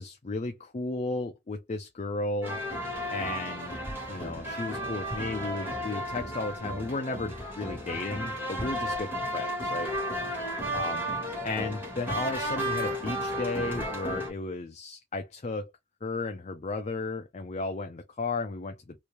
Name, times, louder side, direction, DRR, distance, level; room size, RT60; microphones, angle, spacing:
voice 1, 0.0-2.6 3.1-3.7 4.1-9.9 10.7-11.1 11.4-15.7 16.0-19.0, left 3 dB, 35° left, 0.5 m, -34 dB
sound 1, 2.4-14.3, equal, 10° right, 1.6 m, -33 dB
3.1 x 2.7 x 3.1 m
head